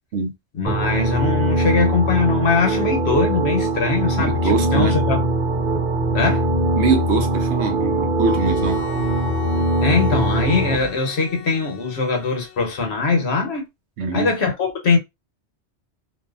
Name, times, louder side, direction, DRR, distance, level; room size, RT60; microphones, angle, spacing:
voice 1, 0.6-5.3 6.1-6.5 9.8-13.6 14.1-15.0, left 4 dB, 65° left, 1.1 m, -21 dB
sound 1, 0.7-10.8, right 1 dB, 55° right, 0.6 m, -21 dB
voice 2, 4.2-5.0 6.8-8.9 14.0-14.3, right 4 dB, 80° right, 1.0 m, -23 dB
sound 2, 7.1-11.0, equal, 30° right, 1.1 m, -37 dB
Bowed string instrument, 8.2-13.2, left 10 dB, 90° left, 1.0 m, -38 dB
2.6 x 2.4 x 2.3 m
omnidirectional pair, 1.2 m